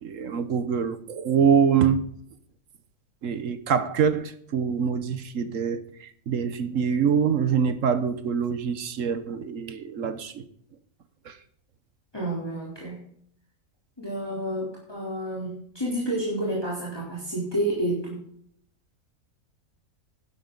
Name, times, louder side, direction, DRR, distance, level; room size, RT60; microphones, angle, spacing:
voice 1, 0.0-2.0 3.2-10.5 11.3-11.4, right 7 dB, 65° right, 11 dB, 1.3 m, -25 dB
voice 2, 12.1-13.0 14.0-18.2, right 1 dB, 15° left, -6 dB, 3.7 m, -30 dB
12.0 x 11.0 x 3.9 m, 0.65 s
omnidirectional pair, 1.5 m